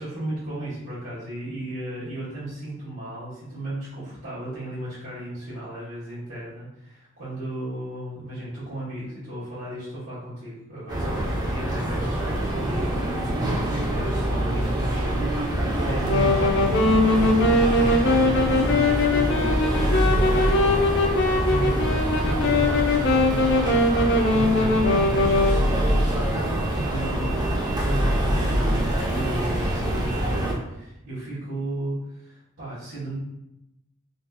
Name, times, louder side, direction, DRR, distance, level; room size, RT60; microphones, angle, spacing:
voice 1, 0.0-23.5 23.9-33.1, right 1 dB, 80° right, -13 dB, 1.5 m, -35 dB
sound 1, 10.9-30.5, right 1 dB, 20° right, 0.5 m, -25 dB
Wind instrument woodwind instrument, 16.1-25.6, left 2 dB, 55° left, 0.5 m, -21 dB
3.6 x 2.7 x 2.3 m, 0.90 s
head